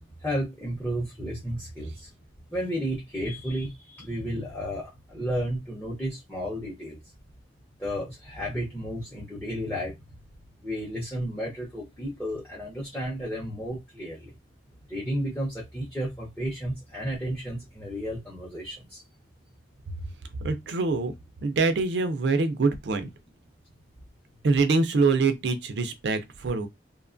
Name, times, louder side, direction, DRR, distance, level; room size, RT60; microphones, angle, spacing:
voice 1, 0.2-2.1 2.5-7.0 7.8-9.9 10.6-14.3 14.9-19.0, equal, 10° left, 0.6 m, -32 dB
voice 2, 20.4-21.1 21.4-23.1 24.4-26.7, right 4 dB, 65° right, 0.4 m, -24 dB
2.7 x 2.2 x 2.4 m
head